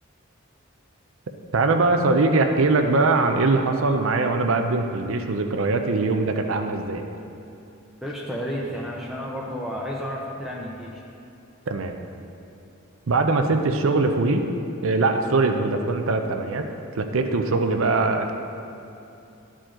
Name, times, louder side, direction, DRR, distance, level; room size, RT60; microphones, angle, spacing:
voice 1, 1.5-7.1 11.7-12.0 13.1-14.4 14.8-16.6 16.9-18.3, right 3 dB, 75° right, 5 dB, 0.6 m, -22 dB
voice 2, 8.0-11.0, equal, ahead, -4 dB, 0.6 m, -31 dB
13.0 x 5.0 x 3.7 m, 2.7 s
head